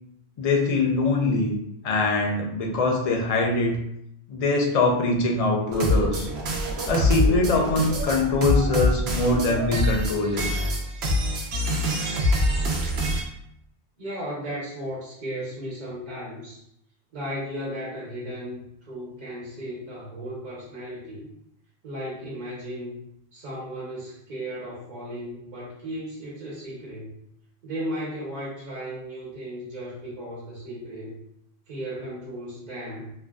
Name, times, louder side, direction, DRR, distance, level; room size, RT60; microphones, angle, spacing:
voice 1, 0.4-1.6 1.8-3.8 4.3-6.3 6.9-10.4, left 3 dB, 55° left, 0 dB, 0.4 m, -23 dB
sound 1, 5.7-13.2, equal, 85° right, 0.8 m, -25 dB
voice 2, 14.0-16.6 17.1-21.3 21.8-23.0 23.3-27.1 27.6-31.2 31.7-33.1, equal, 45° right, -7 dB, 0.8 m, -35 dB
2.5 x 2.2 x 2.2 m, 0.77 s
omnidirectional pair, 1.0 m